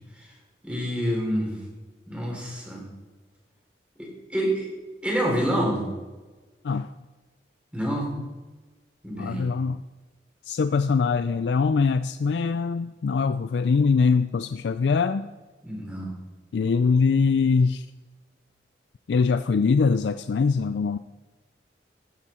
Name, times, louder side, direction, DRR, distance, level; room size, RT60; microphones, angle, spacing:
voice 1, 0.6-1.6 2.1-2.8 4.0-4.7 5.0-5.9 7.7-8.4 9.0-9.5 15.6-16.1, equal, 5° right, -2 dB, 3.4 m, -27 dB
voice 2, 9.2-9.8 10.4-15.3 16.5-17.9 19.1-21.0, left 5 dB, 70° left, 11 dB, 0.4 m, -23 dB
15.0 x 8.3 x 4.3 m, 1.2 s
head